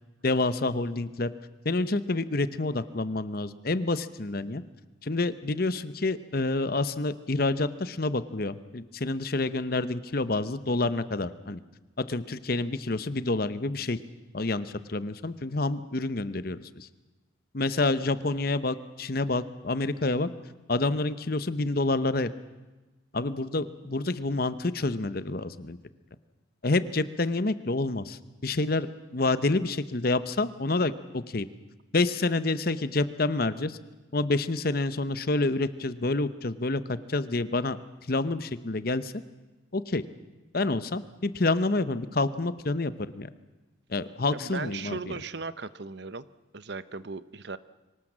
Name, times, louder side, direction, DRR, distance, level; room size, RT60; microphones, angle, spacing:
voice 1, 0.2-1.3 1.6-4.6 5.0-11.6 12.1-14.0 14.3-16.9 17.5-20.3 20.7-22.3 23.1-25.8 26.6-31.5 31.9-33.8 34.1-37.8 38.1-39.1 39.7-40.0 40.5-43.3 43.9-45.0, left 2 dB, 50° left, 14 dB, 0.9 m, -28 dB
voice 2, 44.3-46.3 46.5-47.6, right 4 dB, 55° right, 16 dB, 0.8 m, -37 dB
24.0 x 18.5 x 7.4 m, 1.1 s
head